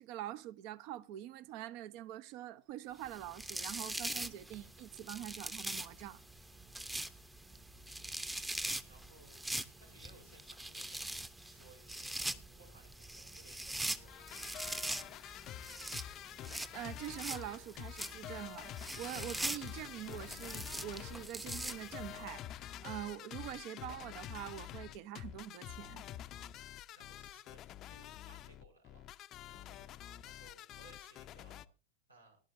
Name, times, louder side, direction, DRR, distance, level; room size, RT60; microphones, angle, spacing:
voice 1, 0.0-6.2 16.7-26.0, right 12 dB, 45° right, 0.9 m, -45 dB
sound 1, 3.0-22.2, right 1 dB, 5° right, 0.9 m, -43 dB
voice 2, 7.7-11.2 11.5-15.4 26.5-29.0 29.5-31.7 32.1-32.4, right 2 dB, 80° right, 5.6 m, -63 dB
sound 2, 14.0-31.6, left 12 dB, 35° left, 0.6 m, -48 dB
19.0 x 12.0 x 2.7 m
figure-of-eight pair, 90°, 0 cm